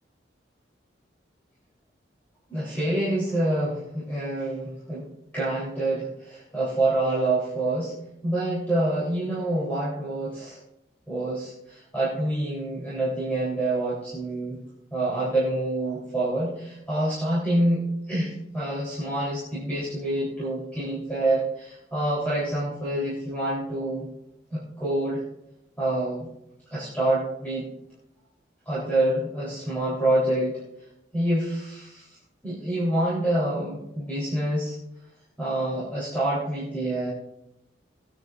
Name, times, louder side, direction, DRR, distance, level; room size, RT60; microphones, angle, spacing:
voice 1, 2.5-7.9 8.2-10.6 11.1-14.6 14.9-24.1 24.5-25.2 25.8-26.3 26.7-27.7 28.7-30.6 31.1-32.2 32.4-34.8 35.4-37.1, right 1 dB, 10° left, -9 dB, 3.6 m, -27 dB
20.5 x 9.4 x 2.6 m, 0.84 s
head